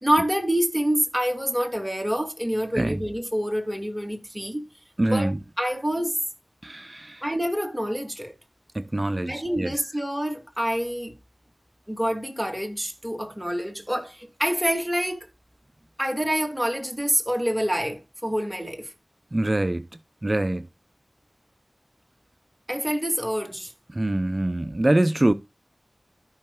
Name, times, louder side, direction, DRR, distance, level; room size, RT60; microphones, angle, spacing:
voice 1, 0.0-4.6 5.1-5.3 5.6-6.2 7.2-8.3 9.3-11.1 11.9-15.3 16.0-18.9 22.7-23.7, equal, 5° right, 2.3 m, -27 dB
voice 2, 5.0-5.4 6.6-7.2 8.7-9.7 19.3-19.9 20.2-20.7 23.9-25.3, right 1 dB, 35° right, 0.6 m, -24 dB
14.0 x 5.7 x 2.2 m
wide cardioid pair, 50°, 0 cm